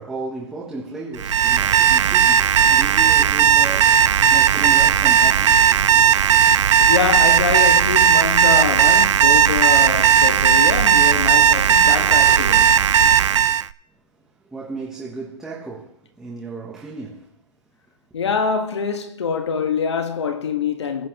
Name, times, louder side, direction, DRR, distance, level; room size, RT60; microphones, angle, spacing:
voice 1, 0.0-6.0 14.4-17.3, right 3 dB, 5° right, 0.9 m, -34 dB
Alarm, 1.2-13.7, right 8 dB, 80° right, 0.4 m, -15 dB
voice 2, 6.9-12.8 18.1-21.1, left 6 dB, 65° left, 1.4 m, -24 dB
20.5 x 7.7 x 3.0 m
hypercardioid pair, 175°, 15 cm